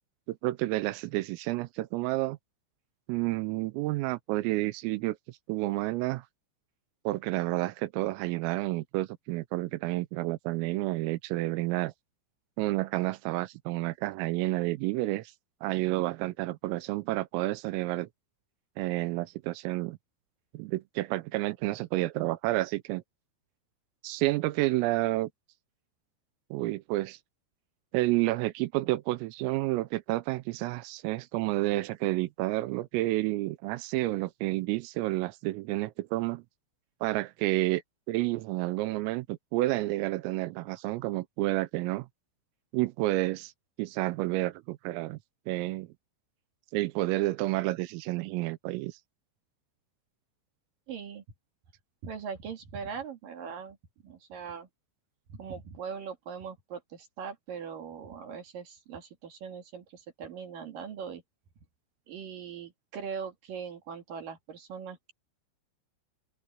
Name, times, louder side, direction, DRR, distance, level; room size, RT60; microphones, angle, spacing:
voice 1, 0.3-2.4 3.1-6.2 7.0-11.9 12.6-15.3 15.6-18.1 18.8-20.0 20.5-23.0 24.0-25.3 26.5-27.2 27.9-36.4 37.0-37.8 38.1-42.1 42.7-43.5 43.8-45.2 45.5-45.9 46.7-49.0, right 19 dB, 90° right, 3.5 m, -30 dB
voice 2, 50.9-51.2 52.0-53.8 54.0-54.7 55.3-61.2 62.1-65.1, right 6 dB, 55° right, 3.1 m, -40 dB
open air
omnidirectional pair, 5.9 m